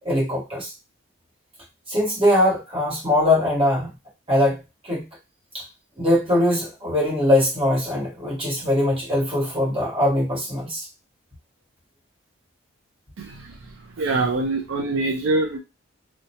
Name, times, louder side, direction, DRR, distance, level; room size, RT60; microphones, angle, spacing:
voice 1, 0.0-0.7 1.9-3.9 4.3-4.6 4.9-5.0 6.0-10.8, left 1 dB, 25° right, -5 dB, 1.3 m, -21 dB
voice 2, 13.2-15.6, right 2 dB, 65° right, 2 dB, 0.4 m, -25 dB
2.9 x 2.1 x 2.7 m, 0.25 s
head